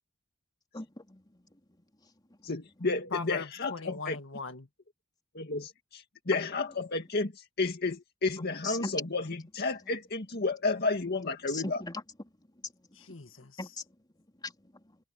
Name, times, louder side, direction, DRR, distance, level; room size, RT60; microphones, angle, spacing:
voice 1, 0.7-1.4 6.3-6.4 8.4-9.0 11.5-12.0 12.6-12.7 13.6-13.8 14.4-15.0, left 3 dB, 20° left, 3.5 m, -39 dB
voice 2, 2.4-4.2 5.3-11.8, left 3 dB, 55° left, 2.0 m, -32 dB
voice 3, 3.1-4.7 12.9-13.6, left 4 dB, 75° left, 1.9 m, -40 dB
head